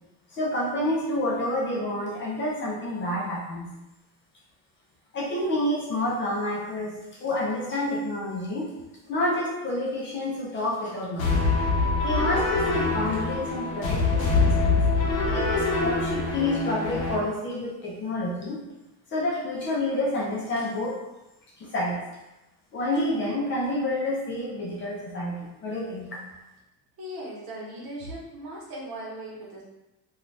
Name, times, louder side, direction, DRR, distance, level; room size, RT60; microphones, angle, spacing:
voice 1, 0.3-3.7 5.1-6.9 7.2-8.7 9.1-11.6 12.0-14.8 15.3-18.6 19.1-21.0 21.6-22.0 22.7-26.2, left 1 dB, 30° left, -4 dB, 0.4 m, -28 dB
sound 1, 11.2-17.1, left 3 dB, 80° left, 0.8 m, -24 dB
voice 2, 27.0-29.6, right 1 dB, 70° right, -5 dB, 1.1 m, -38 dB
2.5 x 2.3 x 3.1 m, 0.98 s
cardioid pair, 180°, 38 cm